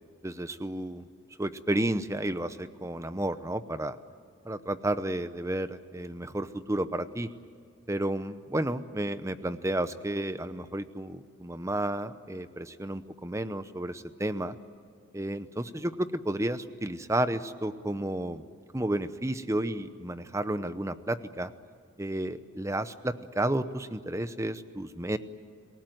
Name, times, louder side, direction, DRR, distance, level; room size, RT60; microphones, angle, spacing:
voice 1, 0.2-1.1 1.4-4.0 4.4-7.3 7.9-14.6 15.1-18.5 18.7-21.5 22.0-25.2, right 1 dB, 15° right, 12 dB, 0.8 m, -32 dB
27.0 x 18.0 x 9.2 m, 2.3 s
head